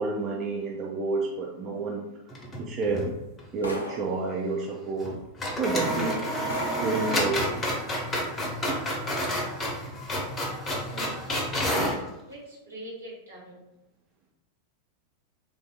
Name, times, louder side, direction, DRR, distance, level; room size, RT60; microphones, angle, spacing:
voice 1, 0.0-2.0 2.7-3.1 3.5-5.2 5.6-6.2 6.8-7.7, right 3 dB, 35° right, -3 dB, 0.5 m, -29 dB
sound 1, 2.3-3.1 3.4-3.5 5.0-5.1 5.4-12.0, equal, 20° left, 0.7 m, -29 dB
sound 2, 3.6-4.2 5.2-5.3 5.9-6.0 6.5-7.0, left 1 dB, 75° left, 0.4 m, -37 dB
voice 2, 10.9-11.2 12.3-13.6, right 1 dB, 75° right, -5 dB, 1.3 m, -43 dB
3.3 x 2.6 x 2.3 m, 0.87 s
figure-of-eight pair, 90°, 0 cm